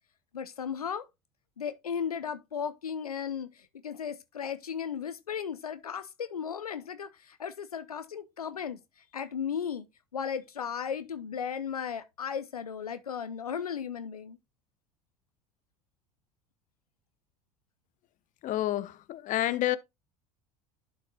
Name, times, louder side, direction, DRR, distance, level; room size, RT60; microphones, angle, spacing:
voice 1, 0.3-1.0 1.6-3.5 3.8-8.8 9.1-9.8 10.1-14.4, left 7 dB, 90° left, 0.6 m, -35 dB
voice 2, 18.4-19.8, left 14 dB, 45° left, 0.8 m, -29 dB
11.5 x 5.2 x 2.3 m
hypercardioid pair, 70°, 19 cm